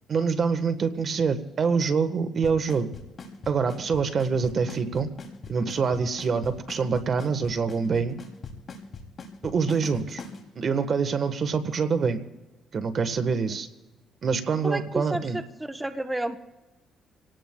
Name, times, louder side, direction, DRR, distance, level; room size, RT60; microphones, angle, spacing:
voice 1, 0.1-2.9 3.5-5.1 5.5-8.2 9.4-10.2 10.6-12.2 12.7-13.7 14.2-15.4, right 5 dB, 50° right, 10 dB, 1.2 m, -25 dB
Drum kit / Snare drum / Bass drum, 2.4-10.4, left 4 dB, 45° left, 2.8 m, -39 dB
voice 2, 14.6-16.4, right 1 dB, 10° right, 8 dB, 0.9 m, -31 dB
28.0 x 18.0 x 2.3 m, 1.1 s
cardioid pair, 80°, 0 cm